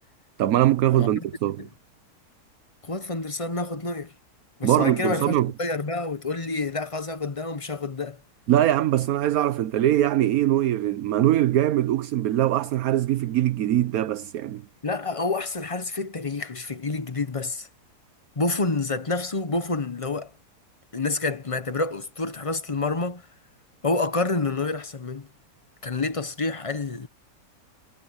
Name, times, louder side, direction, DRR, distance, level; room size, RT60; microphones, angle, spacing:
voice 1, 0.4-1.7 4.6-5.5 8.5-14.6, right 13 dB, 70° right, 1.2 m, -22 dB
voice 2, 0.9-1.2 1.6-1.7 2.8-4.1 4.6-8.2 14.8-17.7 18.4-20.3 20.9-23.2 23.8-25.3 25.8-27.1, left 3 dB, 25° left, 1.0 m, -28 dB
omnidirectional pair, 1.7 m